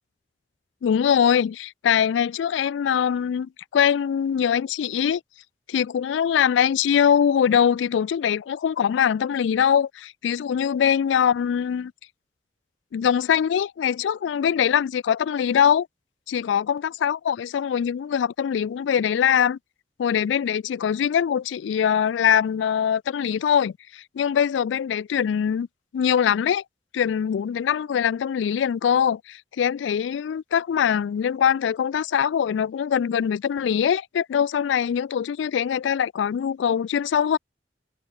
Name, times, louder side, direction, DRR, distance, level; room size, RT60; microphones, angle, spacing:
voice 1, 0.8-5.2 5.7-11.9 12.9-15.9 16.3-19.6 20.0-25.7 25.9-26.6 26.9-37.4, left 8 dB, 90° left, 0.3 m, -22 dB
head